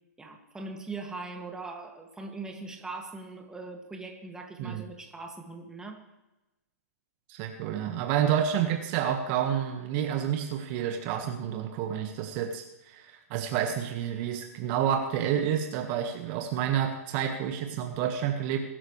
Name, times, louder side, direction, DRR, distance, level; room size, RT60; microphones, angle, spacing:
voice 1, 0.2-6.0, right 3 dB, 5° right, 2 dB, 2.2 m, -41 dB
voice 2, 7.3-18.6, right 9 dB, 40° right, 4 dB, 1.6 m, -29 dB
22.5 x 12.0 x 3.3 m, 0.99 s
hypercardioid pair, 135°, 9 cm